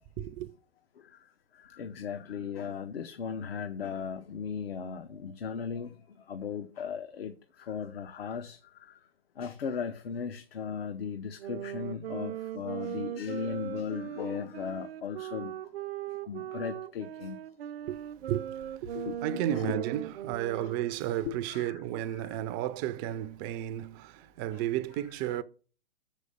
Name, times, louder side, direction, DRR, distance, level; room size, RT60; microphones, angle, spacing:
voice 1, 0.2-0.5 17.9-18.0 18.3-18.5 18.8-19.0 19.2-25.4, right 12 dB, 25° right, 0.3 m, -33 dB
voice 2, 1.0-9.0 9.4-15.7 16.1-17.4 18.9-19.8 20.6-20.7 21.2-21.8 22.1-22.4 24.5-24.6, left 7 dB, 75° left, 0.9 m, -37 dB
sound 1, 11.4-21.1, right 11 dB, 75° right, 0.6 m, -39 dB
6.5 x 5.1 x 6.8 m
hypercardioid pair, 130°, 30 cm